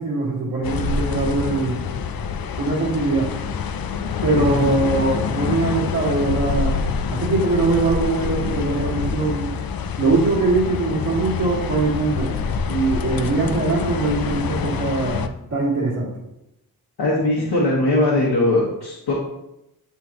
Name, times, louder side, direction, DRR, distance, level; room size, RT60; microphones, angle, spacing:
voice 1, 0.0-1.9 2.6-3.3 4.2-6.8 7.1-9.6 10.0-12.4 12.7-16.1, right 3 dB, 45° right, -7 dB, 2.1 m, -22 dB
sound 1, 0.6-15.3, left 6 dB, 65° left, 0.5 m, -26 dB
voice 2, 4.4-4.7 17.0-19.1, left 2 dB, 90° left, -7 dB, 1.6 m, -20 dB
10.0 x 3.7 x 3.0 m, 0.86 s
wide cardioid pair, 175°, 38 cm